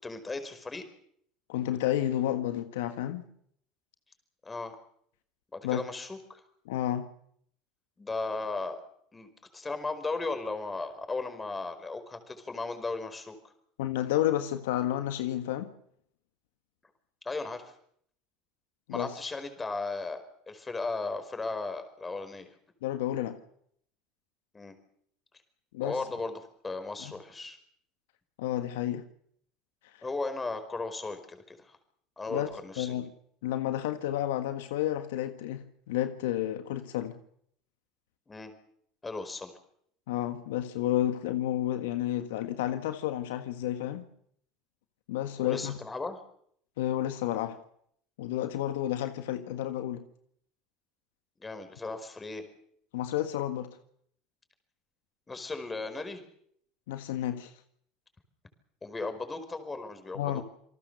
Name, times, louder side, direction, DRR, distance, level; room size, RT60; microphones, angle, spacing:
voice 1, 0.0-0.8 4.4-4.7 5.5-6.4 8.0-8.8 9.1-13.5 17.2-17.7 18.9-22.5 24.5-24.7 25.8-27.6 30.0-31.8 32.2-33.0 38.3-38.5 39.0-39.5 45.4-46.2 51.4-52.4 55.3-56.2 58.8-60.4, left 3 dB, 20° left, 5.0 m, -36 dB
voice 2, 1.5-3.2 5.6-5.8 6.6-7.1 13.8-15.7 18.9-19.1 22.8-23.4 25.7-26.0 27.0-27.1 28.4-29.0 32.3-32.5 32.8-33.0 33.4-37.2 40.1-44.1 45.1-45.8 46.8-47.6 48.2-50.0 52.9-53.7 56.9-57.5 60.1-60.4, left 12 dB, 85° left, 1.6 m, -31 dB
28.0 x 19.0 x 6.9 m
supercardioid pair, 90°, 0 cm